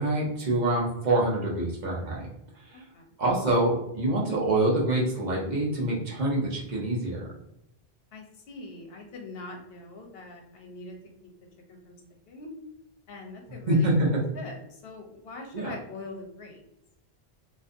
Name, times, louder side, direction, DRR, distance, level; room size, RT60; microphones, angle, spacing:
voice 1, 0.0-2.3 2.7-2.8 3.2-7.2 13.7-14.2 15.5-15.7, right 1 dB, 50° right, -3 dB, 0.7 m, -25 dB
voice 2, 2.7-3.0 8.1-10.9 11.7-12.0 12.3-12.5 13.1-14.0 14.3-16.6, left 2 dB, 75° left, 2 dB, 0.8 m, -43 dB
2.5 x 2.4 x 2.4 m, 0.82 s
omnidirectional pair, 1.0 m